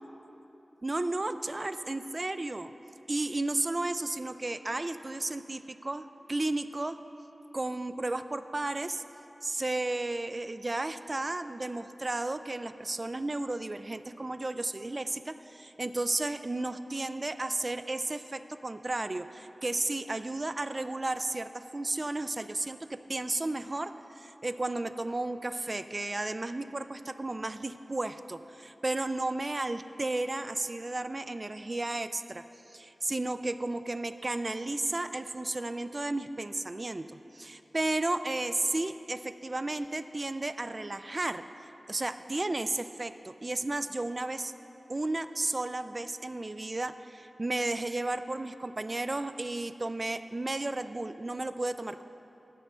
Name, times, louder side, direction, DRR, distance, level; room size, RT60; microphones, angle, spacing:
voice 1, 0.8-2.7 3.1-7.0 7.5-9.0 9.4-41.4 41.9-44.5 44.9-46.9 47.4-52.0, right 2 dB, 35° right, 11 dB, 0.3 m, -33 dB
10.5 x 6.2 x 6.7 m, 3.0 s
wide cardioid pair, 95°, 0 cm